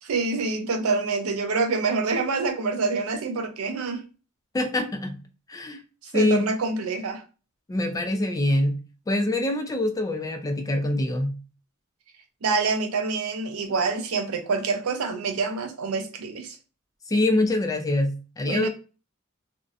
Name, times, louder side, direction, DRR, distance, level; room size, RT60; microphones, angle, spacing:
voice 1, 0.0-4.0 6.0-7.2 12.4-16.6 18.5-18.7, right 4 dB, 75° right, 0.5 m, -26 dB
voice 2, 4.5-5.2 5.5-5.8 6.1-6.4 7.7-8.8 9.1-11.4 17.1-18.7, left 1 dB, 15° left, 0.3 m, -24 dB
2.6 x 2.1 x 2.4 m
head